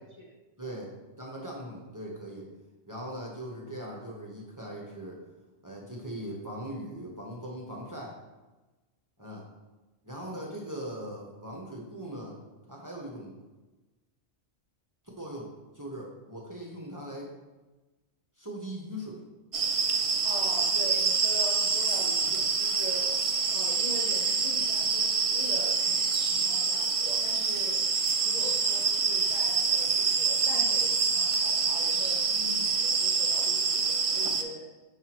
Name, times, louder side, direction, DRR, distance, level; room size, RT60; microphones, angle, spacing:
voice 1, 0.6-2.5 2.9-5.2 5.6-8.2 9.2-9.4 10.0-12.4 12.7-13.3 15.2-15.5 15.7-17.3 18.4-19.2, equal, 20° right, -3 dB, 0.9 m, -40 dB
sound 1, 19.5-34.4, right 5 dB, 55° right, 0.3 m, -26 dB
voice 2, 20.2-23.2 23.5-26.0 26.3-27.9 28.2-34.7, equal, 40° left, -4 dB, 0.7 m, -42 dB
5.7 x 5.6 x 3.0 m, 1.1 s
omnidirectional pair, 1.2 m